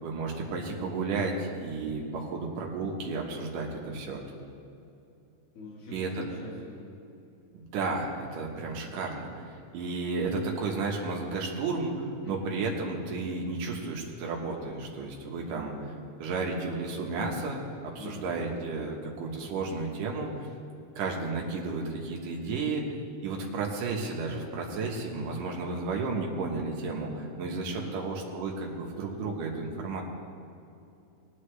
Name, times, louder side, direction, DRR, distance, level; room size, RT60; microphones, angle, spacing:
voice 1, 0.0-4.2 5.9-6.2 7.5-15.9 16.2-20.5 21.0-22.8 23.2-30.0, right 3 dB, 80° right, -1 dB, 3.0 m, -33 dB
voice 2, 5.6-6.9 12.2-12.5 18.0-18.4 23.4-23.6 27.8-28.1, left 2 dB, 65° left, -6 dB, 3.7 m, -44 dB
19.0 x 10.5 x 3.3 m, 2.7 s
omnidirectional pair, 3.7 m